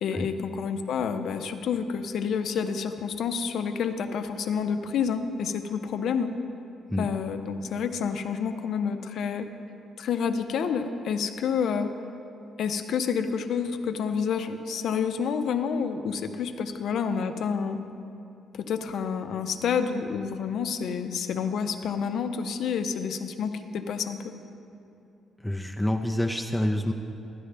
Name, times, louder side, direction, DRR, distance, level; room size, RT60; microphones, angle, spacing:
voice 1, 0.0-6.3 7.0-9.5 10.0-11.9 12.6-17.8 18.5-24.3, left 6 dB, 70° left, 8 dB, 0.6 m, -29 dB
voice 2, 25.4-26.9, left 1 dB, 5° left, 3 dB, 0.5 m, -27 dB
12.5 x 10.0 x 3.3 m, 2.7 s
cardioid pair, 90°, 0 cm